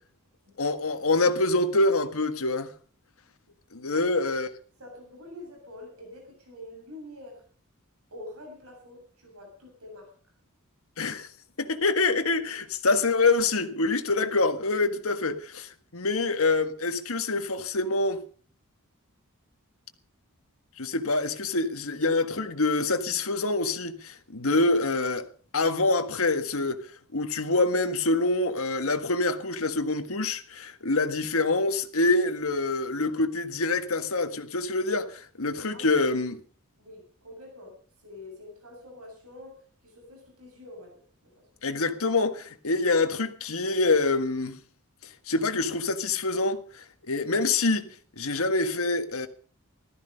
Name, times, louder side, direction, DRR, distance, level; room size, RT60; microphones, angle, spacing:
voice 1, 0.6-2.7 3.7-4.5 11.0-11.3 11.6-18.2 20.8-25.2 25.5-36.4 41.6-44.6 45.3-47.9 48.2-49.3, left 3 dB, 70° left, 1.6 m, -26 dB
voice 2, 4.8-7.4 8.1-10.1 35.7-36.1 36.8-39.6 39.8-41.5, left 1 dB, 85° right, 7.3 m, -46 dB
15.0 x 13.5 x 5.4 m
head